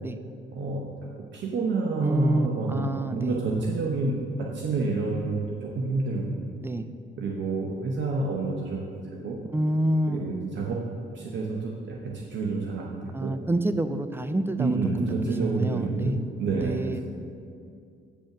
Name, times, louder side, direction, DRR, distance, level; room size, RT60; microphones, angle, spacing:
voice 1, 0.5-6.4 7.2-8.8 9.1-9.4 10.1-10.8 11.1-13.3 14.6-17.0, right 3 dB, 65° right, -1 dB, 1.0 m, -29 dB
voice 2, 2.0-3.4 6.6-6.9 9.5-10.3 13.1-16.2 16.6-17.0, right 1 dB, 10° right, 10 dB, 0.5 m, -28 dB
8.5 x 5.5 x 6.0 m, 2.4 s
cardioid pair, 90°, 20 cm